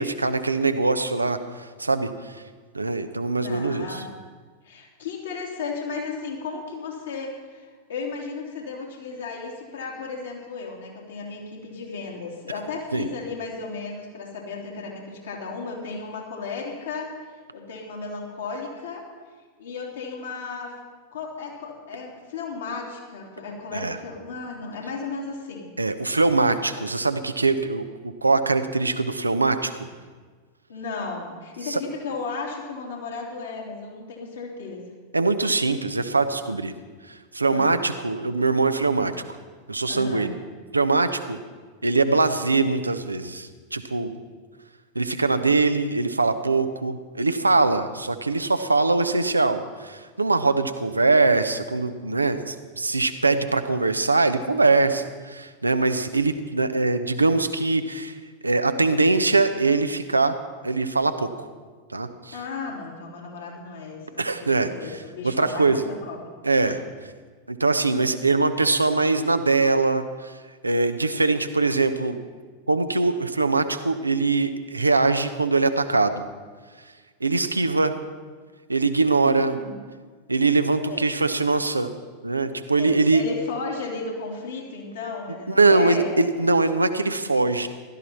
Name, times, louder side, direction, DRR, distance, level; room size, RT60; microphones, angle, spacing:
voice 1, 0.0-2.3 2.7-4.0 12.9-13.1 23.7-24.0 25.8-27.8 28.2-29.7 31.6-31.8 35.1-36.7 37.3-39.1 39.7-40.4 40.7-41.4 41.8-44.1 44.9-58.2 58.4-60.4 60.6-61.5 61.9-62.3 64.2-64.7 65.2-65.8 66.4-66.8 67.5-70.3 70.6-72.2 72.7-76.2 77.2-77.9 78.7-79.5 80.3-81.9 82.2-83.2 85.5-87.7, right 3 dB, 80° right, 10 dB, 0.8 m, -22 dB
voice 2, 3.3-4.1 4.6-19.0 19.6-20.8 21.1-25.7 30.7-34.9 37.4-37.8 39.9-40.3 62.3-66.2 66.5-66.7 79.2-79.7 80.9-81.0 82.7-86.3, left 4 dB, 65° left, -1 dB, 3.1 m, -34 dB
16.0 x 12.5 x 4.4 m, 1.5 s
figure-of-eight pair, 90°, 0 cm